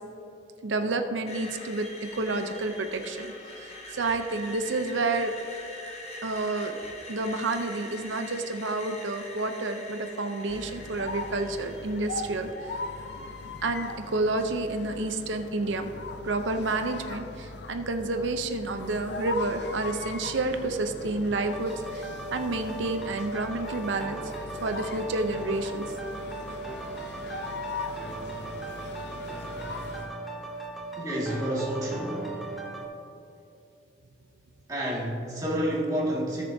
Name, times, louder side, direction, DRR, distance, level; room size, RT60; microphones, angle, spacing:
voice 1, 0.6-3.3 3.6-5.3 6.2-6.8 7.1-12.5 13.6-15.9 16.2-24.2 24.6-25.8, right 2 dB, 85° right, 7 dB, 0.6 m, -29 dB
Screech, 1.3-15.2, left 2 dB, 35° left, 1.1 m, -44 dB
sound 1, 10.5-30.2, left 3 dB, 65° left, 0.5 m, -40 dB
sound 2, 21.5-32.8, right 2 dB, ahead, 0.8 m, -38 dB
voice 2, 31.0-32.4 34.7-36.4, right 1 dB, 20° right, -6 dB, 1.9 m, -29 dB
16.5 x 6.9 x 2.7 m, 2.8 s
head